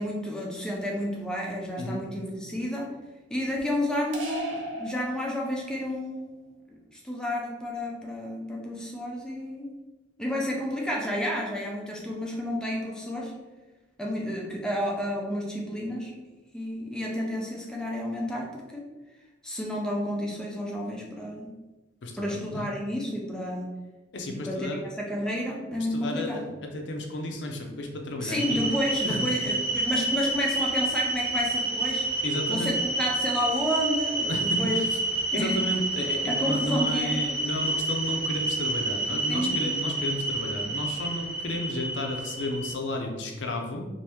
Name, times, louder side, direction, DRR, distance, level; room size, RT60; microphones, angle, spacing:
voice 1, 0.0-2.9 3.3-6.4 6.9-9.7 10.2-13.3 14.0-16.1 16.5-18.8 19.4-21.5 22.2-23.7 24.3-26.4 28.2-32.1 32.5-34.8 35.3-35.6 36.3-37.2 39.3-39.6, equal, 5° left, -2 dB, 0.5 m, -31 dB
sound 1, 4.1-5.8, right 1 dB, 75° right, 0.7 m, -36 dB
voice 2, 22.0-22.7 24.1-24.8 25.9-28.6 29.0-29.2 32.2-32.7 34.3-35.0 35.3-43.8, left 1 dB, 65° left, 2 dB, 0.6 m, -32 dB
sound 2, 28.4-42.7, right 2 dB, 25° right, 0.8 m, -29 dB
2.8 x 2.6 x 3.4 m, 1.1 s
head